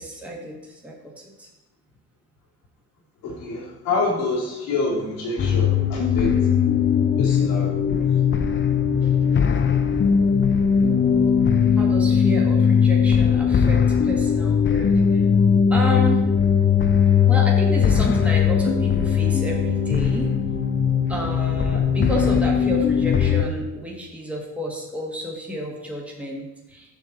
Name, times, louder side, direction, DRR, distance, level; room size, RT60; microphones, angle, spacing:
voice 1, 0.0-1.5 9.0-9.3 11.8-15.3 15.7-16.3 17.3-20.3 21.1-27.0, equal, 5° right, -2 dB, 1.7 m, -30 dB
voice 2, 3.2-6.4 7.2-8.0, left 3 dB, 75° left, -4 dB, 2.6 m, -27 dB
sound 1, 5.4-23.4, left 7 dB, 35° left, 0.7 m, -19 dB
7.1 x 6.3 x 4.1 m, 0.97 s
supercardioid pair, 70°, 35 cm